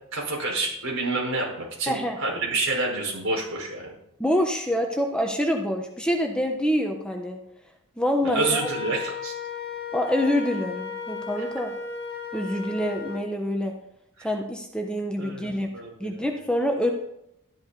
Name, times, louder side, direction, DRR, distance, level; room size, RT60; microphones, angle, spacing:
voice 1, 0.1-3.9 8.3-9.3 11.4-11.5 14.2-14.3 15.2-16.2, right 2 dB, 70° right, -1 dB, 4.8 m, -28 dB
voice 2, 1.9-2.2 4.2-7.4 8.0-8.7 9.9-11.7 12.3-13.7 14.2-15.7 16.0-16.9, equal, 5° left, 2 dB, 1.0 m, -26 dB
Wind instrument woodwind instrument, 8.4-13.2, left 5 dB, 50° left, 1.9 m, -35 dB
12.5 x 11.5 x 4.1 m, 0.80 s
head